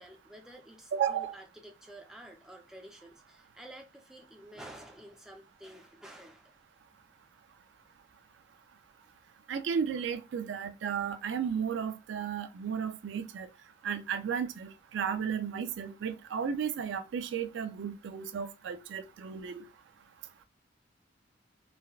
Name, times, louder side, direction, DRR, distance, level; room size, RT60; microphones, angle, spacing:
voice 1, 0.0-6.5, right 1 dB, 5° right, 0.6 m, -50 dB
voice 2, 0.9-1.4 9.5-13.5 13.8-19.6, right 7 dB, 75° right, 0.3 m, -34 dB
3.4 x 2.2 x 2.3 m
head